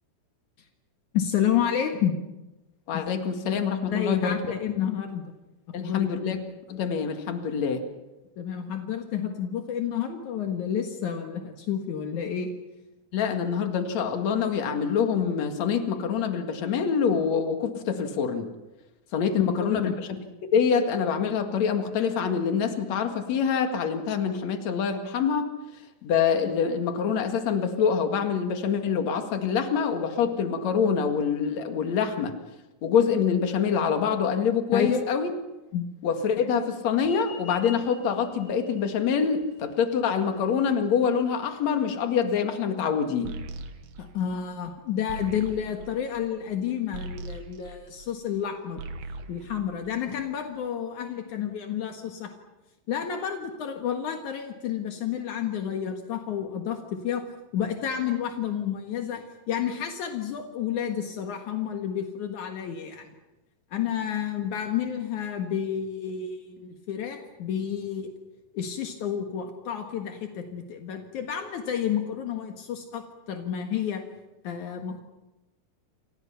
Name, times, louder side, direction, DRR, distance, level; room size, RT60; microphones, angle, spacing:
voice 1, 1.1-2.2 3.9-5.2 5.8-6.1 8.4-12.5 19.4-19.9 34.7-35.0 35.7-35.9 44.0-48.8 49.3-52.3 52.9-57.2 57.5-63.1 63.7-68.1 68.5-74.0 74.4-75.0, left 9 dB, 75° left, 4 dB, 1.8 m, -30 dB
voice 2, 2.9-4.4 5.7-6.4 6.7-7.8 13.1-18.5 19.1-19.9 20.4-25.5 26.0-32.3 32.8-35.3 36.0-43.4, left 6 dB, 55° left, 6 dB, 2.0 m, -25 dB
sound 1, 37.0-42.0, left 6 dB, 20° right, 4.0 m, -48 dB
sound 2, 43.3-48.4 48.7-50.5, right 2 dB, 65° right, 2.9 m, -41 dB
29.0 x 26.0 x 5.8 m, 1.0 s
omnidirectional pair, 5.9 m